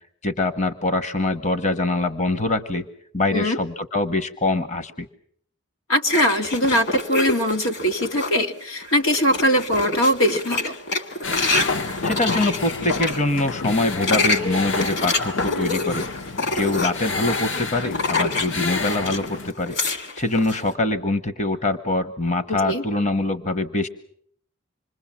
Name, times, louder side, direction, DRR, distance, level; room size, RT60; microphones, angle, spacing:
voice 1, 0.2-2.9 3.1-5.1 12.0-16.1 16.5-19.8 20.2-23.9, left 2 dB, 35° left, 12 dB, 1.0 m, -24 dB
voice 2, 5.9-10.7 22.5-22.8, equal, 90° left, 4 dB, 2.3 m, -21 dB
sound 1, 6.1-8.4 8.8-13.2 13.8-19.3 19.6-20.6, left 3 dB, 55° left, 2.1 m, -27 dB
sound 2, 11.2-19.5, left 3 dB, 75° left, 1.2 m, -29 dB
27.0 x 21.5 x 7.3 m, 0.65 s
head